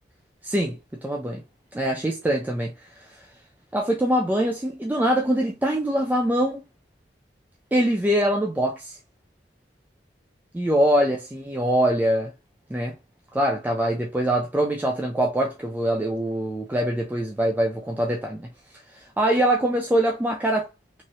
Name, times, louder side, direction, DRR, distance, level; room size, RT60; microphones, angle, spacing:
voice 1, 0.4-1.4 1.7-3.2 3.7-6.6 7.7-9.0 10.5-12.3 12.7-13.0 13.3-18.5 18.9-20.7, right 1 dB, 10° right, 0.3 m, -23 dB
3.0 x 2.8 x 2.7 m
head